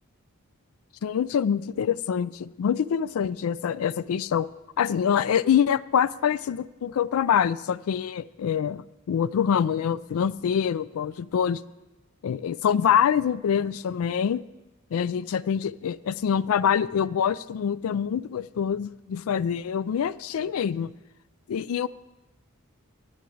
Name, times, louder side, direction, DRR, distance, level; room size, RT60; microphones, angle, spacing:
voice 1, 1.0-4.5 4.8-11.6 12.2-14.4 14.9-20.9 21.5-21.9, left 8 dB, 75° left, 19 dB, 0.3 m, -25 dB
8.6 x 6.8 x 7.8 m, 1.1 s
head